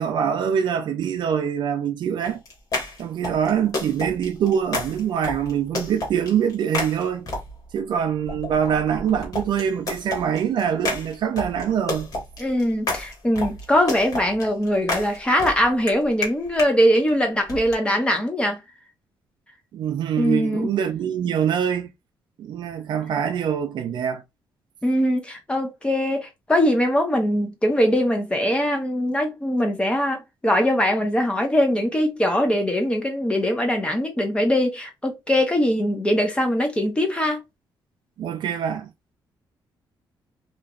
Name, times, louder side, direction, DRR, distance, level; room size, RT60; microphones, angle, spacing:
voice 1, 0.0-2.4 3.0-7.3 7.7-12.1 19.7-21.9 22.4-24.2 38.2-38.9, right 8 dB, 65° right, 0.5 m, -24 dB
sound 1, 2.2-7.7 8.3-16.7 17.5-17.8, left 2 dB, 45° left, 1.5 m, -31 dB
voice 2, 12.4-18.6 20.2-20.7 24.8-37.4, equal, 10° left, 0.8 m, -22 dB
3.0 x 2.4 x 2.4 m
cardioid pair, 140°, 8 cm